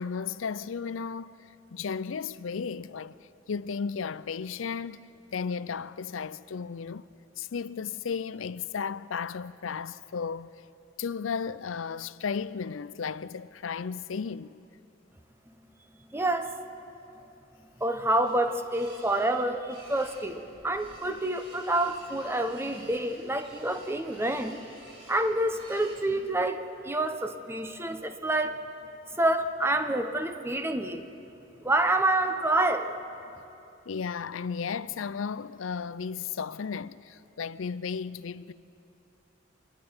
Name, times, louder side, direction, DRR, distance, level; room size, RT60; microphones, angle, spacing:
voice 1, 0.0-1.4 1.7-3.1 3.5-7.1 7.4-10.5 11.0-14.6 33.9-38.5, left 6 dB, 85° left, 0.5 m, -34 dB
voice 2, 16.1-16.5 17.8-24.6 25.1-28.6 29.2-31.0 31.6-33.0, right 1 dB, 10° right, 0.8 m, -28 dB
sound 1, 17.6-26.5, right 1 dB, 30° right, 6.3 m, -53 dB
27.0 x 11.0 x 9.5 m
head